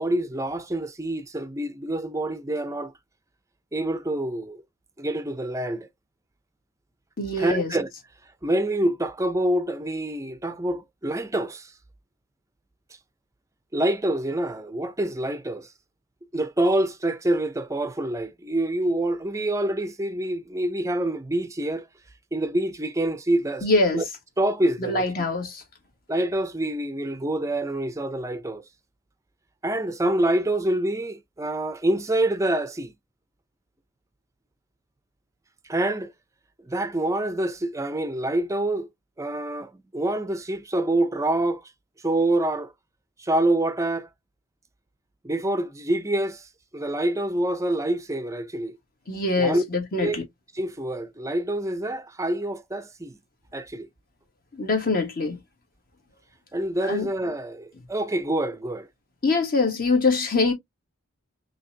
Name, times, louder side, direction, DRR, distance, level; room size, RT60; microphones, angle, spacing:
voice 1, 0.0-2.9 3.7-4.6 5.0-5.9 7.4-7.9 8.4-11.7 13.7-15.7 16.3-21.9 22.3-23.7 23.9-24.0 24.4-25.1 26.1-28.6 29.6-32.9 35.7-36.1 36.6-38.9 39.2-41.6 42.0-42.7 43.2-44.1 45.2-48.7 49.4-49.6 50.0-50.2 50.5-53.2 53.5-53.9 56.5-58.9, right 1 dB, 15° right, 0.5 m, -26 dB
voice 2, 7.2-7.7 23.6-24.0 24.8-25.6 49.1-50.2 54.5-55.4 56.9-57.1 59.2-60.5, left 3 dB, 45° left, 1.5 m, -23 dB
4.0 x 2.8 x 2.7 m
head